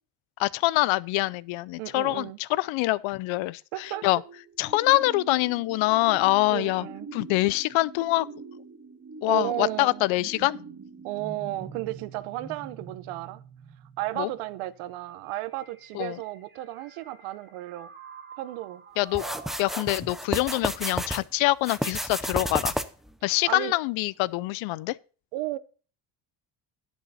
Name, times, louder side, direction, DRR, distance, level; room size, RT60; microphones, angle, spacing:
voice 1, 0.4-4.2 4.6-6.9 7.1-8.3 9.2-10.6 14.2-14.3 15.9-16.2 19.0-19.2 19.6-22.7 23.2-25.0, left 19 dB, 65° left, 0.6 m, -25 dB
voice 2, 1.8-2.4 3.7-4.0 6.5-7.1 9.3-10.0 11.0-13.4 14.0-17.9 18.4-18.8 23.5-23.7 25.3-25.6, right 16 dB, 80° right, 1.0 m, -33 dB
sound 1, 3.8-20.0, right 5 dB, 25° right, 2.0 m, -45 dB
sound 2, 19.1-21.2 21.6-23.1, equal, ahead, 0.5 m, -31 dB
10.5 x 8.4 x 4.1 m
cardioid pair, 125°, 50 cm